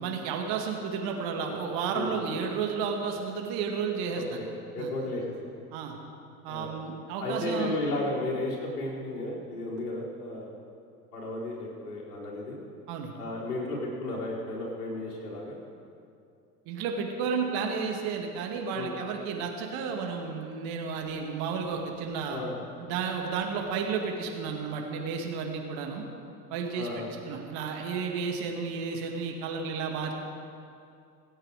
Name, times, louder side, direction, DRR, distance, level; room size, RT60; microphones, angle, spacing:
voice 1, 0.0-4.2 4.8-4.9 5.7-6.0 6.4-7.8 12.9-13.2 16.7-22.4 22.8-26.0 26.5-26.9 27.2-30.2, right 6 dB, 50° right, 2 dB, 2.1 m, -32 dB
voice 2, 4.1-4.5 4.7-5.5 6.5-6.7 7.2-10.5 11.1-12.6 13.1-15.6 18.7-18.9 22.3-22.5 26.7-27.1, left 2 dB, 70° left, -4 dB, 4.7 m, -34 dB
26.5 x 8.9 x 5.0 m, 2.5 s
figure-of-eight pair, 75°, 48 cm